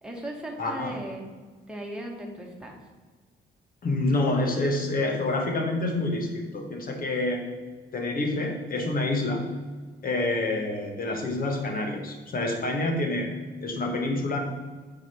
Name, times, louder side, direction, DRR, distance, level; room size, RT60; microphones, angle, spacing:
voice 1, 0.0-1.3 1.7-2.8, right 1 dB, 5° right, -1 dB, 1.8 m, -37 dB
voice 2, 0.6-0.9 3.8-7.4 7.9-9.4 10.0-13.3 13.6-14.4, left 2 dB, 45° left, 3 dB, 1.7 m, -27 dB
8.3 x 4.8 x 4.6 m, 1.4 s
cardioid pair, 90°, 20 cm